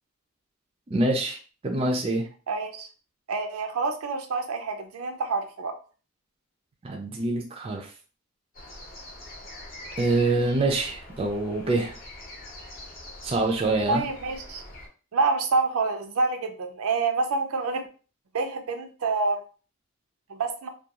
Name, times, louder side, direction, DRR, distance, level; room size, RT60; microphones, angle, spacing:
voice 1, 0.9-1.4 1.6-2.3 6.8-7.9 10.0-12.0 13.2-14.0, right 2 dB, 25° right, 1 dB, 0.4 m, -25 dB
voice 2, 2.5-2.9 3.3-5.7 13.9-14.6 15.1-17.8 18.3-19.4 20.3-20.7, right 3 dB, 85° right, 5 dB, 0.5 m, -27 dB
sound 1, 8.5-14.9, left 1 dB, 40° left, 0.7 m, -43 dB
2.3 x 2.3 x 2.8 m, 0.37 s
head